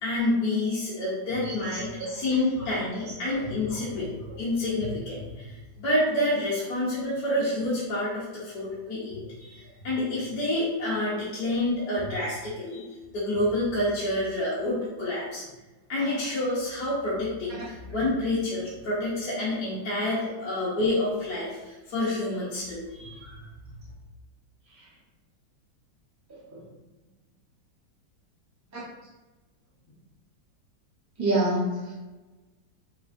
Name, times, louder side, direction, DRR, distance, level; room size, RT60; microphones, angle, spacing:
voice 1, 0.0-4.1 4.4-12.8 13.1-15.4 15.9-23.5, left 1 dB, 65° left, -8 dB, 1.6 m, -28 dB
voice 2, 1.4-3.9 6.2-6.3 17.5-17.6 24.7-24.9 26.5-26.6 28.7-28.8 31.2-32.0, right 1 dB, 15° right, -9 dB, 0.6 m, -31 dB
5.0 x 3.4 x 2.6 m, 1.1 s
omnidirectional pair, 2.0 m